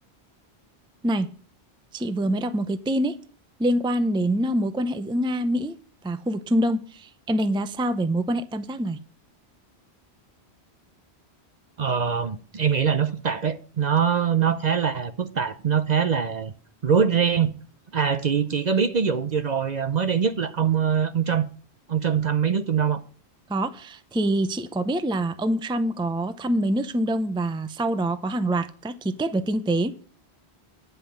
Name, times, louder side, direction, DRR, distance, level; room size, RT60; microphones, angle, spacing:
voice 1, 1.9-3.2 3.6-5.7 6.0-9.0 23.5-29.9, right 1 dB, 5° right, 0.5 m, -25 dB
voice 2, 11.8-16.5 16.8-17.5 17.9-21.4 21.9-23.0, right 7 dB, 45° right, 0.7 m, -23 dB
9.8 x 5.6 x 8.4 m
omnidirectional pair, 1.1 m